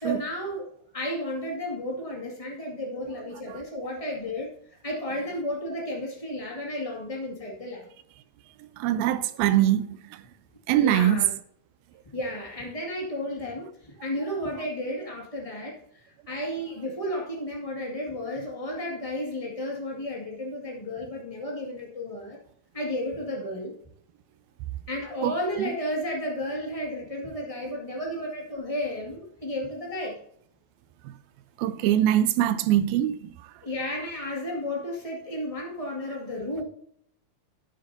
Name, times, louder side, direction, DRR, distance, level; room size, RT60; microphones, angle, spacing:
voice 1, 0.0-0.7 0.9-4.5 4.8-7.9 10.7-11.3 12.1-22.4 22.7-23.7 24.9-30.2 33.6-36.6, left 1 dB, 45° left, 0.4 m, -33 dB
voice 2, 8.6-10.2 10.7-11.3 25.2-25.7 31.0-31.1 31.6-33.5, right 12 dB, 80° right, 2.2 m, -24 dB
11.0 x 8.9 x 2.7 m
omnidirectional pair, 4.5 m